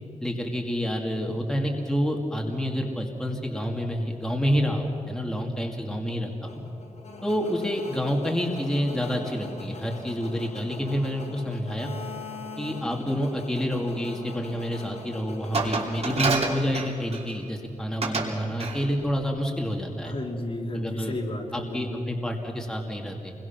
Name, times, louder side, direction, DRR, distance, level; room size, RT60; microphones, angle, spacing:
voice 1, 0.2-6.5 7.2-11.9 12.6-20.1 20.7-21.1 21.5-23.3, equal, 5° left, 0 dB, 2.3 m, -28 dB
sound 1, 6.5-16.9, left 3 dB, 60° left, 4.0 m, -42 dB
Glass, 15.5-17.4 18.0-18.3 18.6-18.8, right 4 dB, 55° right, 3.2 m, -27 dB
voice 2, 20.0-22.1, left 1 dB, 45° left, 0 dB, 3.1 m, -32 dB
28.0 x 22.5 x 6.0 m, 2.8 s
wide cardioid pair, 125°, 13 cm